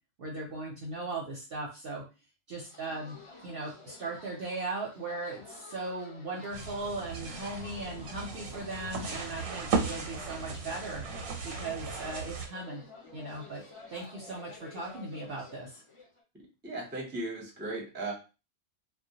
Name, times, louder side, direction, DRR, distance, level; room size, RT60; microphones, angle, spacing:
voice 1, 0.2-2.0 2.5-3.2 3.4-11.0 11.4-12.8 13.1-13.6 13.9-15.8, right 2 dB, 60° right, -2 dB, 0.6 m, -38 dB
sound 1, 2.6-16.2, left 3 dB, 45° left, 0.4 m, -51 dB
sound 2, 6.5-12.5, right 4 dB, 85° right, 1.0 m, -36 dB
voice 2, 16.6-18.1, right 2 dB, 10° right, -1 dB, 0.5 m, -36 dB
2.1 x 2.1 x 2.7 m, 0.30 s
omnidirectional pair, 1.3 m